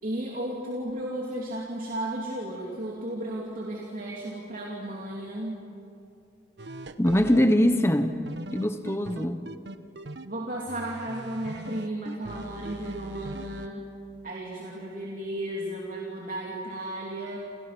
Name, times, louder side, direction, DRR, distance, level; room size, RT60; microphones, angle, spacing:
voice 1, 0.0-5.6 10.2-13.8 14.2-17.4, right 1 dB, 50° right, 3.1 m, -34 dB
sound 1, 6.6-7.5 8.3-10.3 10.7-13.7, right 1 dB, 65° right, 1.2 m, -40 dB
voice 2, 7.0-8.2 8.5-9.5, equal, 15° left, 1.0 m, -22 dB
30.0 x 29.0 x 6.1 m
head